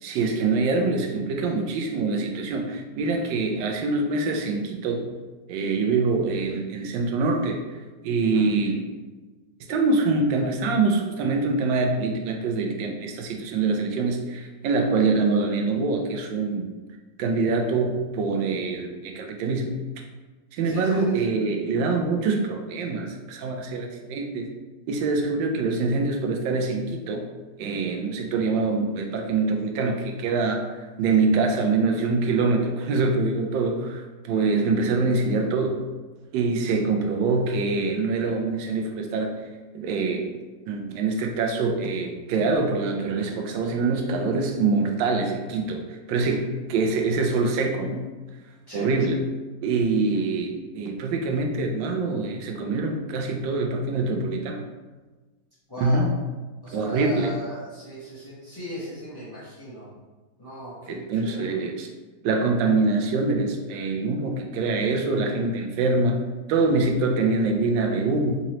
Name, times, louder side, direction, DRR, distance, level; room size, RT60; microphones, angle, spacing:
voice 1, 0.0-5.1 5.5-7.6 8.0-8.8 9.7-16.7 17.2-19.7 20.5-24.5 24.9-27.2 27.6-35.8 36.3-39.4 39.7-40.3 40.7-48.1 48.7-49.2 49.6-54.6 55.8-56.1 56.7-57.3 60.9-61.9 62.2-66.2 66.5-68.4, right 3 dB, 85° right, 3 dB, 1.3 m, -24 dB
voice 2, 20.6-21.0 48.7-48.9 55.7-56.1 56.6-59.9 60.4-61.7, left 1 dB, 30° left, -11 dB, 0.4 m, -37 dB
3.8 x 2.8 x 3.0 m, 1.3 s
omnidirectional pair, 2.0 m